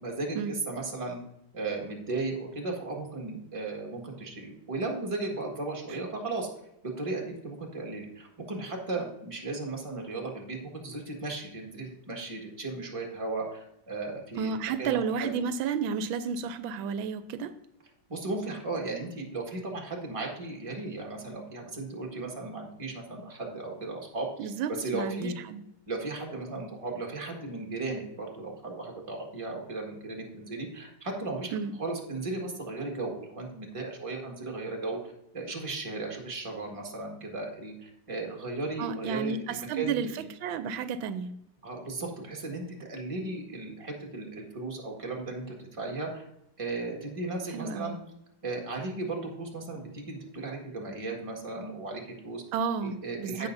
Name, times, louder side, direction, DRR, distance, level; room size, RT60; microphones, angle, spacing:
voice 1, 0.0-1.2 1.5-6.5 6.8-15.4 18.1-25.3 25.9-40.0 41.6-46.2 46.6-48.0 48.4-52.4 52.8-53.5, right 3 dB, 20° right, 0 dB, 1.5 m, -36 dB
voice 2, 14.4-17.6 24.4-25.6 31.5-31.7 38.8-41.4 47.5-48.0 52.5-53.5, right 6 dB, 85° right, 12 dB, 1.4 m, -32 dB
15.5 x 5.6 x 2.6 m, 0.82 s
omnidirectional pair, 2.1 m